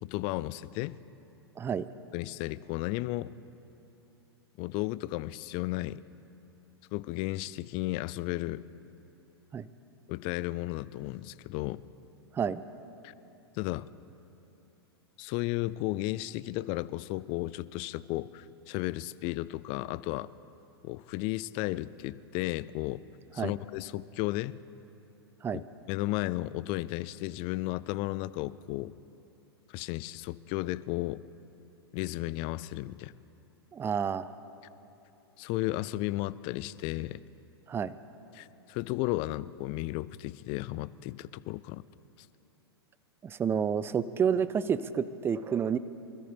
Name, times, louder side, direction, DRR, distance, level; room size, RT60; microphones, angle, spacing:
voice 1, 0.0-1.0 2.1-3.3 4.6-6.0 6.9-8.6 10.1-11.8 13.0-13.1 13.6-13.9 15.2-20.3 20.8-23.0 23.3-24.6 25.5-28.9 29.7-31.2 31.9-33.1 35.4-37.2 38.3-41.8, left 18 dB, 40° left, 18 dB, 0.4 m, -34 dB
voice 2, 1.6-1.9 9.5-9.7 12.3-12.6 23.4-23.5 25.4-25.6 33.7-34.3 37.7-37.9 43.2-45.8, right 7 dB, 15° right, 15 dB, 0.5 m, -29 dB
25.0 x 13.5 x 3.5 m, 2.9 s
hypercardioid pair, 105°, 14 cm